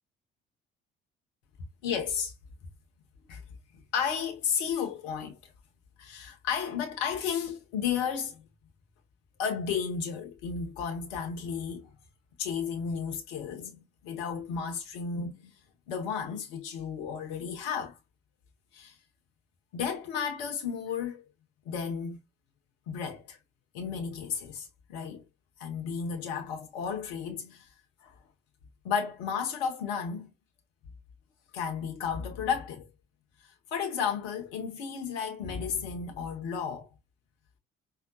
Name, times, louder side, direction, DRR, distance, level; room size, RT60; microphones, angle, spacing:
voice 1, 1.8-2.3 3.3-3.4 3.9-5.5 6.0-8.4 9.4-11.9 12.4-15.5 15.9-18.0 18.7-18.9 19.7-21.3 21.7-22.2 22.9-23.4 23.7-25.2 25.6-27.7 28.0-28.1 28.8-30.3 31.5-32.9 33.4-36.9, left 7 dB, 70° left, 1.0 m, -33 dB
4.8 x 3.3 x 2.2 m
figure-of-eight pair, 45°, 30 cm